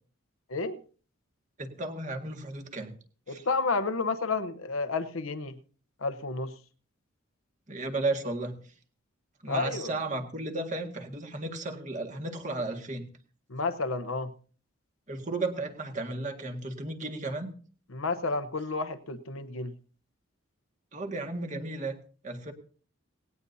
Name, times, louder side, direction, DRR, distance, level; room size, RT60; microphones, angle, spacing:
voice 1, 1.6-2.9 3.3-3.4 7.7-8.6 9.4-13.1 15.1-17.5 20.9-22.0 22.2-22.5, right 2 dB, 35° right, 3 dB, 1.9 m, -34 dB
voice 2, 3.3-5.6 6.0-6.5 9.5-9.9 13.5-14.3 17.9-19.7, left 3 dB, 80° left, 12 dB, 1.0 m, -31 dB
19.0 x 17.5 x 2.8 m, 0.41 s
head